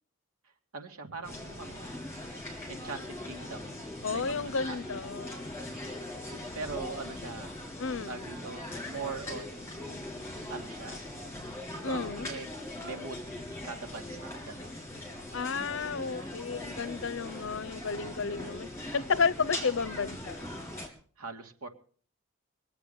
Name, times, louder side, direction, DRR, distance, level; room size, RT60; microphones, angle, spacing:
voice 1, 0.7-1.9 2.7-3.8 4.1-4.8 6.3-7.6 8.1-10.1 10.5-11.1 11.7-12.5 12.8-13.2 13.6-14.8 21.2-21.7, right 4 dB, 85° right, 2.5 m, -41 dB
sound 1, 1.2-20.9, left 1 dB, 10° left, 3.4 m, -40 dB
voice 2, 4.0-5.5 7.8-8.1 11.8-12.3 15.3-20.4, left 5 dB, 60° left, 0.6 m, -32 dB
22.5 x 7.9 x 7.0 m
head